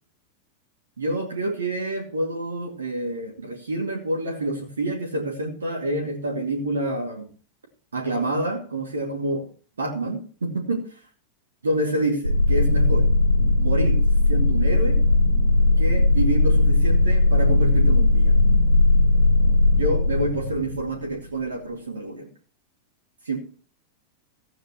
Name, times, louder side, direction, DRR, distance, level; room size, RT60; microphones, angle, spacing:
voice 1, 1.0-7.3 7.9-9.5 9.8-10.9 11.6-13.1 13.6-14.0 14.3-15.0 15.8-18.4 19.8-22.3 23.2-23.4, right 1 dB, 70° right, 2 dB, 2.4 m, -27 dB
sound 1, 12.2-21.5, left 2 dB, 90° right, 3.3 m, -18 dB
15.5 x 9.2 x 3.1 m, 0.41 s
figure-of-eight pair, 90°, 0 cm